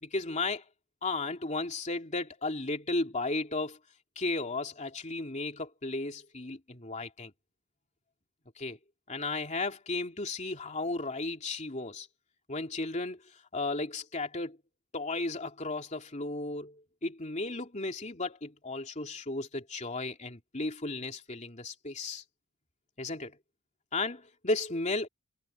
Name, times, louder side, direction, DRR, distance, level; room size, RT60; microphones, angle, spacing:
voice 1, 0.0-0.6 1.0-3.8 4.2-7.3 8.6-8.8 9.1-12.1 12.5-13.2 13.5-14.6 14.9-22.2 23.0-23.3 23.9-25.1, left 2 dB, 35° left, 2.9 m, -34 dB
head